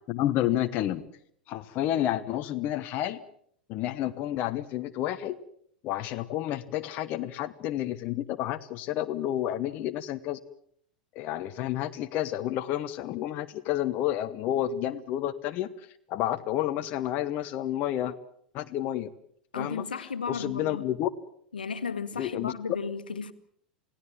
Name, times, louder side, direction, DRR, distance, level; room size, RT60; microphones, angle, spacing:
voice 1, 0.1-1.0 1.5-3.2 3.7-5.4 5.8-10.4 11.1-15.7 16.1-18.1 18.5-19.1 19.5-19.8 20.3-21.1 22.2-22.5, left 12 dB, 40° left, 1.1 m, -30 dB
voice 2, 19.5-20.9 21.5-23.3, left 5 dB, 75° left, 1.7 m, -34 dB
28.5 x 17.5 x 7.5 m
figure-of-eight pair, 85°, 5 cm